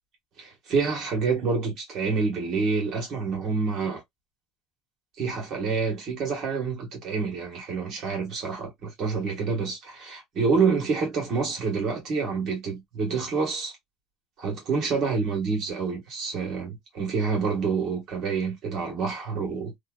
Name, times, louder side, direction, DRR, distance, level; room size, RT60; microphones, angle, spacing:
voice 1, 0.4-4.0 5.2-13.8 14.4-19.7, right 5 dB, 45° right, 1.2 m, -27 dB
2.8 x 2.2 x 2.3 m
cardioid pair, 150°, 0 cm